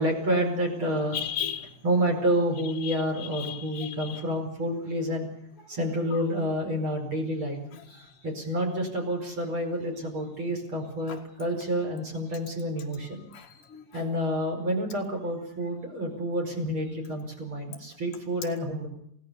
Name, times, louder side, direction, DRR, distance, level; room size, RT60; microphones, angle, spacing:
voice 1, 0.0-1.2 1.8-5.3 5.7-7.6 7.9-13.2 13.9-18.9, equal, 30° right, 3 dB, 5.1 m, -29 dB
voice 2, 1.1-1.7 2.8-4.2 6.1-6.2 7.7-7.8 11.1-11.2 13.3-14.0, left 10 dB, 45° left, 1 dB, 2.0 m, -36 dB
29.0 x 17.5 x 7.0 m, 0.73 s
omnidirectional pair, 5.3 m